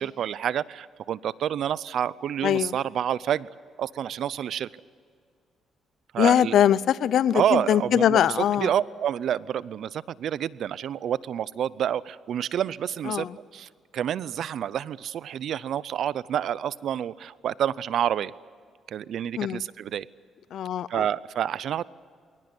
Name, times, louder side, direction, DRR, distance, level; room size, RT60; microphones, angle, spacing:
voice 1, 0.0-3.5 3.8-4.7 6.1-6.7 7.3-13.3 13.5-18.3 18.9-20.1 20.9-21.8, right 10 dB, 70° right, 19 dB, 0.6 m, -28 dB
voice 2, 6.2-8.7 13.1-13.3 19.4-19.6 20.5-21.0, left 10 dB, 70° left, 19 dB, 0.6 m, -22 dB
21.5 x 18.5 x 9.7 m, 2.1 s
cardioid pair, 90°, 0 cm